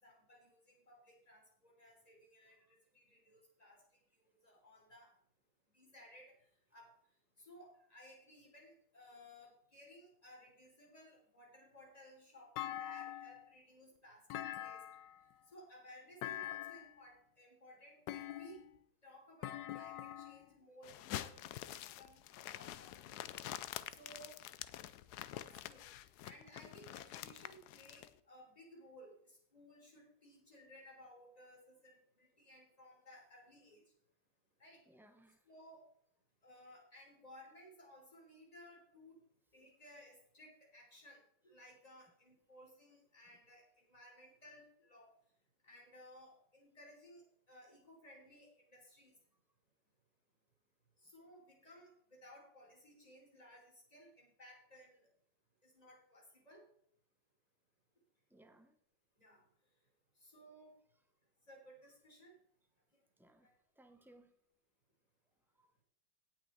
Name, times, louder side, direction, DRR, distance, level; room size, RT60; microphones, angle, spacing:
voice 1, 0.0-3.8 4.2-5.1 5.7-7.0 7.4-14.3 14.6-14.8 15.5-18.6 19.0-21.6 22.0-22.2 22.5-23.3 23.9-24.4 25.3-25.9 26.2-33.8 34.6-34.8 35.4-35.9 36.4-39.2 39.5-45.1 45.6-49.1 51.0-55.1 55.6-56.7 59.2-59.5 60.2-60.8 61.5-62.4 62.9-63.0 63.4-63.5, equal, 20° left, -1 dB, 3.6 m, -59 dB
Thump thud, 12.6-13.5 14.3-15.2 16.2-17.0 18.1-18.8 19.4-20.4, left 13 dB, 90° left, 1.3 m, -44 dB
sound 1, 20.8-28.1, left 13 dB, 75° left, 1.1 m, -47 dB
voice 2, 34.8-35.4 58.3-58.7 63.2-63.5 63.8-64.3 65.6-65.7, right 1 dB, 5° right, 6 dB, 0.4 m, -64 dB
17.0 x 6.1 x 4.4 m, 0.65 s
omnidirectional pair, 1.9 m